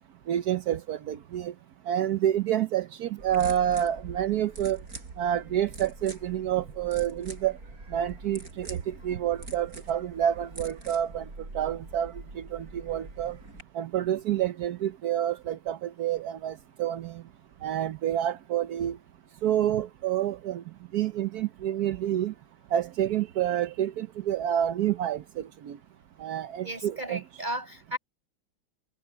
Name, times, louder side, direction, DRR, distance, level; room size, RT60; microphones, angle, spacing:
voice 1, 0.3-1.5 1.9-4.8 5.2-7.6 7.9-11.3 11.5-13.4 13.7-17.2 17.6-19.0 19.4-20.6 20.9-22.3 22.7-25.8 26.2-27.2, right 11 dB, 60° right, 1.1 m, -28 dB
sound 1, 3.2-13.6, right 2 dB, 45° right, 6.9 m, -44 dB
voice 2, 26.6-28.0, right 1 dB, 20° right, 8.1 m, -34 dB
omnidirectional pair, 2.2 m